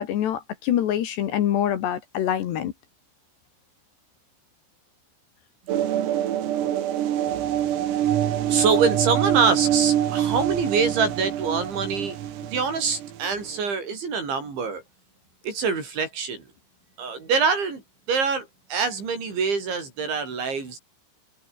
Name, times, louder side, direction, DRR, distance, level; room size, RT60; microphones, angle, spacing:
voice 1, 0.0-2.7, left 10 dB, 65° left, 3.5 m, -25 dB
sound 1, 5.7-13.6, right 11 dB, 85° right, 5.2 m, -25 dB
voice 2, 8.5-12.2 12.4-14.8 15.4-16.5 17.0-20.8, right 5 dB, 60° right, 9.0 m, -25 dB
omnidirectional pair, 5.9 m